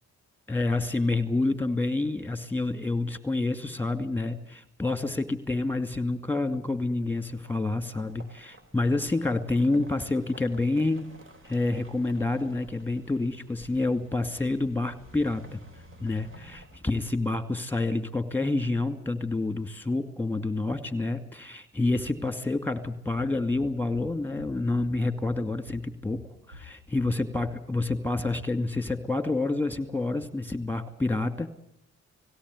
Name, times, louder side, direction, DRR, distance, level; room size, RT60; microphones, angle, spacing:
voice 1, 0.5-11.1 11.4-15.6 16.0-31.5, left 2 dB, 5° left, 9 dB, 2.5 m, -28 dB
sound 1, 6.7-17.5, right 1 dB, 40° right, 4.4 m, -53 dB
sound 2, 23.5-28.4, left 2 dB, 85° right, 2.2 m, -49 dB
18.5 x 17.5 x 9.7 m, 0.74 s
cardioid pair, 80°, 30 cm